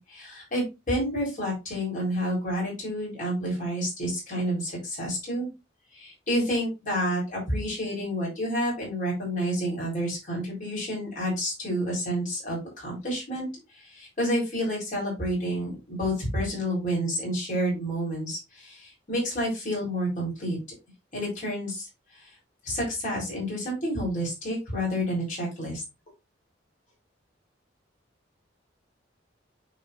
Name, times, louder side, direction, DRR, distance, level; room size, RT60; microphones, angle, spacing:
voice 1, 0.0-5.5 5.9-13.5 13.7-20.6 21.1-21.9 22.2-22.3 22.6-25.8, equal, 45° left, -4 dB, 3.9 m, -29 dB
9.1 x 4.2 x 2.6 m, 0.25 s
head